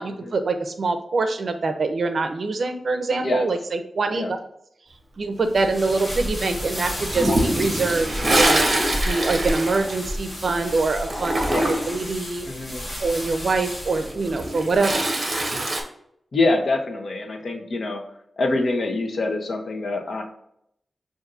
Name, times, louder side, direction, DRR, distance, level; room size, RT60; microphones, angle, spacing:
voice 1, 0.0-4.4 5.2-12.5 13.0-15.1, right 3 dB, 60° right, 7 dB, 0.5 m, -24 dB
sound 1, 5.5-15.0, equal, 20° left, 1.1 m, -32 dB
Toilet flush, 7.1-10.6 10.8-12.0 14.1-15.8, right 1 dB, 40° right, 0.8 m, -24 dB
voice 2, 12.4-12.8 16.3-18.0 18.4-20.2, left 2 dB, 65° left, 3 dB, 0.7 m, -25 dB
6.5 x 2.6 x 2.5 m, 0.74 s
wide cardioid pair, 120°, 0 cm